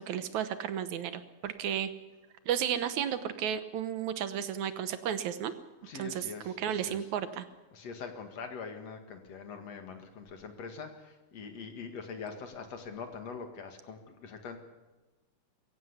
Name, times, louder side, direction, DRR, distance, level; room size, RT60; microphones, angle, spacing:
voice 1, 0.0-1.9 2.5-5.5 6.0-7.5, right 9 dB, 75° right, 11 dB, 2.3 m, -33 dB
voice 2, 5.8-7.1 7.7-14.6, left 5 dB, 60° left, 6 dB, 3.0 m, -43 dB
22.5 x 15.5 x 8.4 m, 1.2 s
omnidirectional pair, 3.5 m